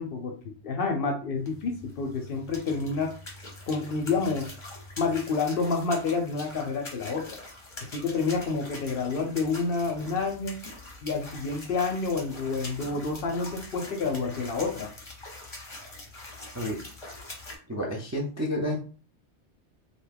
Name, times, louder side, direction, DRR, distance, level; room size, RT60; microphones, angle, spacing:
voice 1, 0.0-3.1 3.7-4.5 5.0-7.4 7.8-10.6 11.0-14.9, left 4 dB, 60° left, 4 dB, 0.7 m, -29 dB
sound 1, 1.4-17.6, left 2 dB, 30° left, 0.8 m, -44 dB
voice 2, 17.7-18.8, left 1 dB, 25° right, -3 dB, 0.3 m, -30 dB
2.7 x 2.2 x 3.3 m, 0.39 s
omnidirectional pair, 1.2 m